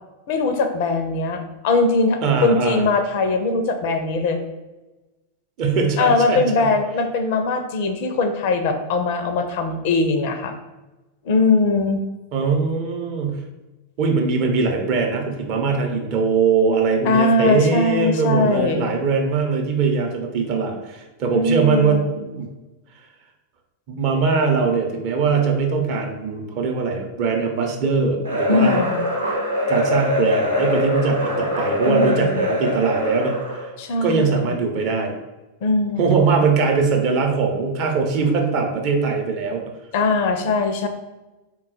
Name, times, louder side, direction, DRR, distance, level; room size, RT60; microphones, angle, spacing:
voice 1, 0.3-4.4 6.0-10.5 11.3-12.0 17.0-18.9 21.3-22.1 28.5-29.0 31.8-32.5 33.8-34.5 35.6-36.3 39.9-40.9, left 3 dB, 50° left, 7 dB, 0.4 m, -21 dB
voice 2, 2.2-2.8 5.6-6.7 12.3-13.4 14.0-22.5 23.9-28.8 29.7-33.7 34.0-35.2 36.0-39.6, right 5 dB, 40° right, 2 dB, 0.6 m, -21 dB
sound 1, 28.2-33.7, equal, 85° right, 0.9 m, -23 dB
3.6 x 2.3 x 4.1 m, 1.1 s
figure-of-eight pair, 90°, 0 cm